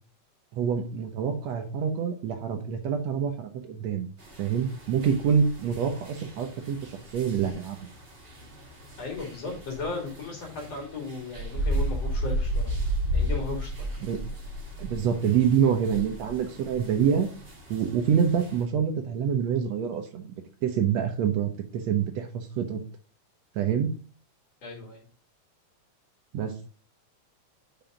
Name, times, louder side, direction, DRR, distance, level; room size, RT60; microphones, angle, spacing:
voice 1, 0.5-4.1 4.4-7.8 14.0-14.2 14.8-17.3 17.7-20.3 20.6-22.8 23.6-23.9 26.3-26.5, right 7 dB, 70° right, 6 dB, 1.9 m, -26 dB
sound 1, 4.2-18.6, right 1 dB, 25° right, 1.3 m, -34 dB
voice 2, 9.0-12.8 13.1-14.1 24.6-25.0, left 4 dB, 60° left, 0 dB, 3.7 m, -36 dB
5.8 x 5.5 x 5.1 m, 0.39 s
omnidirectional pair, 3.4 m